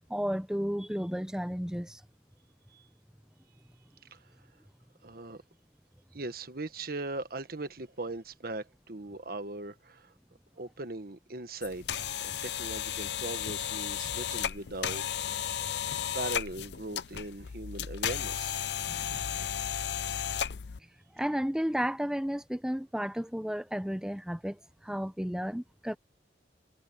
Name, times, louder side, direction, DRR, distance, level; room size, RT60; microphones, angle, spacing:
voice 1, 0.1-2.0 18.8-19.5 21.1-26.0, equal, 5° right, 0.8 m, -33 dB
voice 2, 5.0-5.4 6.1-10.1 10.6-15.5 16.1-18.6, right 2 dB, 55° right, 1.4 m, -39 dB
sound 1, 11.6-20.8, left 9 dB, 70° left, 0.6 m, -34 dB
head